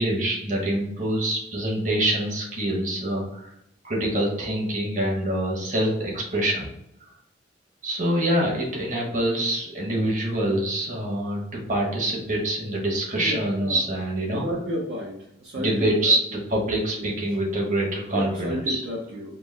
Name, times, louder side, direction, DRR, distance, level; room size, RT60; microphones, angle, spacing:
voice 1, 0.0-3.5 3.8-6.7 7.0-7.1 7.8-14.4 15.5-18.8, right 1 dB, 45° right, -2 dB, 1.2 m, -25 dB
voice 2, 13.2-13.8 14.3-15.2 15.4-16.1 17.0-17.1 18.1-19.4, left 1 dB, 65° right, -4 dB, 0.7 m, -31 dB
4.4 x 2.0 x 4.1 m, 0.78 s
head